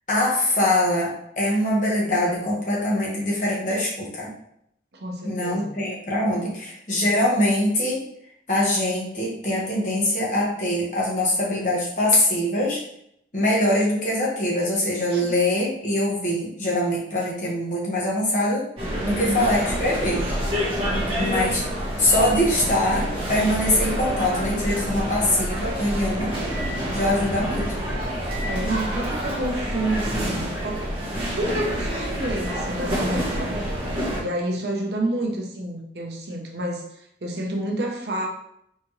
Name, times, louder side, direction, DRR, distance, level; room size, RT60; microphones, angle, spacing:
voice 1, 0.1-4.3 5.2-8.0 8.5-12.8 13.3-18.7 19.0-20.2 21.2-21.6 22.0-26.3 26.9-27.7, left 1 dB, 45° left, -5 dB, 1.4 m, -23 dB
voice 2, 4.9-5.8 15.1-15.2 19.0-19.5 20.9-21.4 28.4-31.0 31.3-33.7 34.2-38.3, right 1 dB, 70° right, 1 dB, 0.9 m, -29 dB
sound 1, 18.8-34.2, equal, 30° right, 1.4 m, -27 dB
4.3 x 3.6 x 3.1 m, 0.73 s
head